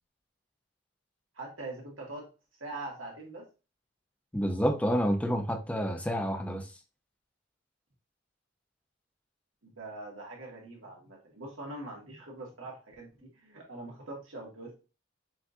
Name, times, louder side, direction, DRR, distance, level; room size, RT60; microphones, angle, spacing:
voice 1, 1.3-2.3 2.6-3.5 9.6-14.8, right 2 dB, 85° right, 1.6 m, -43 dB
voice 2, 4.3-6.7, equal, 5° left, 0.5 m, -29 dB
5.8 x 2.6 x 2.5 m
head